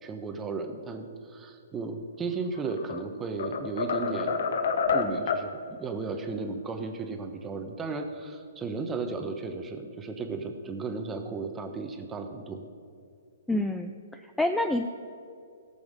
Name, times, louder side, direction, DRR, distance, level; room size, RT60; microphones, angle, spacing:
voice 1, 0.0-4.5 4.9-12.6, right 4 dB, 15° right, 5 dB, 1.2 m, -35 dB
sound 1, 2.5-3.0 3.4-5.5, left 5 dB, 60° left, 0.9 m, -28 dB
voice 2, 13.5-14.9, left 1 dB, 5° left, 6 dB, 0.5 m, -28 dB
17.5 x 7.0 x 5.2 m, 2.4 s
figure-of-eight pair, 125°, 0 cm